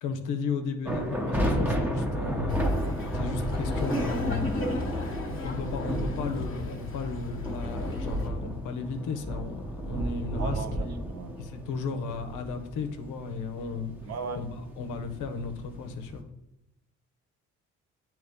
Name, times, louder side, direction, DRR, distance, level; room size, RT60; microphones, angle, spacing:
voice 1, 0.0-2.9 3.1-4.7 5.4-11.0 11.4-13.9 14.4-16.2, left 5 dB, 85° left, 6 dB, 0.8 m, -34 dB
sound 1, 0.8-16.2, right 1 dB, 5° right, 0.9 m, -33 dB
Laughter, 2.5-8.3, left 2 dB, 40° left, 1.3 m, -35 dB
voice 2, 10.4-11.3 14.0-14.4, right 5 dB, 55° right, 8 dB, 0.8 m, -37 dB
9.1 x 3.1 x 3.5 m, 0.93 s
cardioid pair, 90°, 30 cm